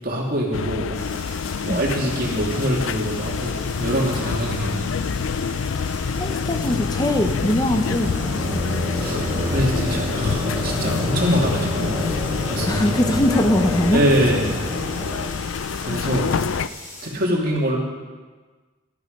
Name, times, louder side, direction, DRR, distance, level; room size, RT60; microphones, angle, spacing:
voice 1, 0.0-1.0 1.6-4.8 9.0-12.0 12.5-12.8 13.9-14.4 15.8-16.3 17.0-17.8, equal, 45° right, -2 dB, 2.6 m, -24 dB
sound 1, 0.5-16.7, left 5 dB, 75° left, 0.4 m, -27 dB
sound 2, 0.9-17.1, left 2 dB, 40° left, 4.6 m, -40 dB
voice 2, 6.1-8.6 12.6-14.0, left 1 dB, 20° left, 4 dB, 0.7 m, -22 dB
sound 3, 6.1-15.3, equal, 25° right, 4.6 m, -30 dB
13.0 x 11.0 x 5.3 m, 1.4 s
head